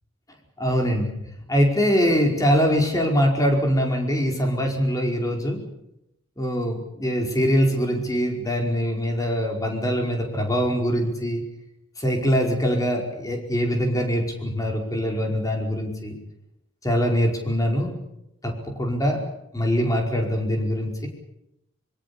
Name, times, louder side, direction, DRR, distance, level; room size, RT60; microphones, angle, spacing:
voice 1, 0.6-1.1 1.5-5.6 6.4-11.4 12.0-16.1 16.8-17.9 18.4-19.2 19.5-21.1, equal, 15° left, 2 dB, 5.0 m, -23 dB
25.5 x 23.5 x 7.0 m, 0.85 s
head